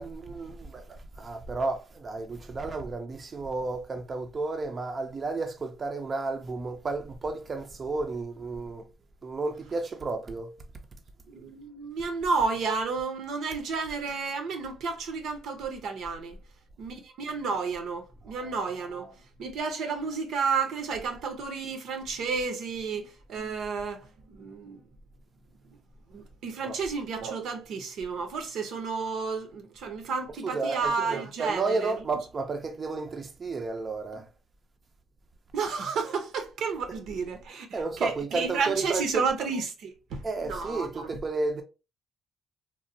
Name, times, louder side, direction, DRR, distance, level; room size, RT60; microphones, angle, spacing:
voice 1, 0.0-8.9 9.2-10.6 18.3-18.6 26.6-26.8 30.3-30.9 31.4-34.3 36.9-37.0 37.7-39.3 40.2-41.6, right 3 dB, 40° right, 0.4 m, -32 dB
voice 2, 11.3-16.4 16.8-19.1 19.4-24.8 26.1-31.9 35.5-41.1, right 5 dB, 80° right, 0.6 m, -31 dB
3.0 x 2.1 x 2.6 m
cardioid pair, 90°, 0 cm